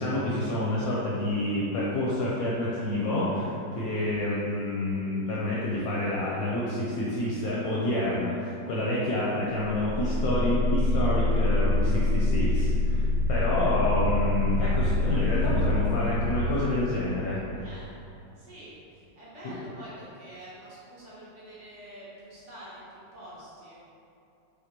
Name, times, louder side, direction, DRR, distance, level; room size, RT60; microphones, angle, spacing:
voice 1, 0.0-17.4 19.4-19.5, left 1 dB, 70° left, -6 dB, 0.9 m, -28 dB
voice 2, 3.9-4.3 17.5-17.9 18.4-23.8, right 1 dB, 55° right, -9 dB, 0.9 m, -47 dB
sound 1, 9.7-17.2, left 2 dB, 80° right, 1.4 m, -26 dB
3.6 x 3.3 x 2.9 m, 2.7 s
omnidirectional pair, 1.9 m